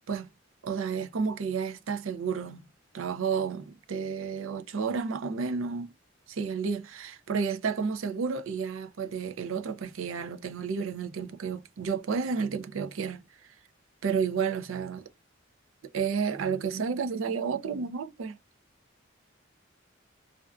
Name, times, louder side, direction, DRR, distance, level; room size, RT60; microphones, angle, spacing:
voice 1, 0.6-2.7 2.9-5.9 6.3-13.2 14.0-15.0 15.9-18.4, right 5 dB, 75° right, 0.5 m, -31 dB
2.5 x 2.3 x 2.3 m
head